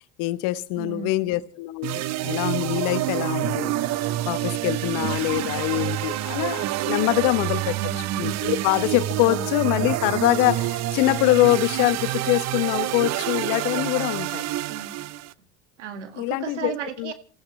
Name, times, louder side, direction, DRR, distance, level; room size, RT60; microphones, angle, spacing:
voice 1, 0.0-3.8 4.0-7.8 8.2-14.4 16.2-16.7 17.0-17.1, left 17 dB, 65° left, 1.1 m, -24 dB
voice 2, 0.8-1.3 7.7-8.3 9.2-9.6 13.2-13.6 14.7-15.0 15.8-17.1, right 7 dB, 90° right, 2.0 m, -35 dB
sound 1, 1.8-15.3, right 15 dB, 50° right, 0.8 m, -27 dB
28.5 x 15.5 x 3.2 m
hypercardioid pair, 80°, 34 cm